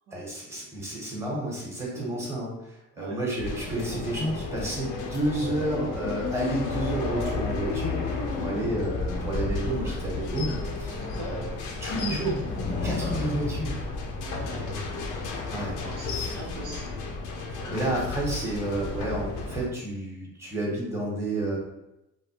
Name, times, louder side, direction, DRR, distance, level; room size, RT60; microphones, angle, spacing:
voice 1, 0.1-11.4 11.8-13.7 15.5-15.8 16.1-16.4 17.7-21.6, right 1 dB, 10° right, -4 dB, 1.1 m, -31 dB
voice 2, 1.9-2.3 3.0-3.2 8.3-8.7 11.0-11.4 14.2-14.9 15.7-16.9 17.6-17.9, right 1 dB, 85° right, -4 dB, 0.9 m, -42 dB
sound 1, 3.4-19.7, left 3 dB, 90° left, 0.6 m, -32 dB
3.2 x 2.2 x 2.8 m, 0.89 s
cardioid pair, 90°, 30 cm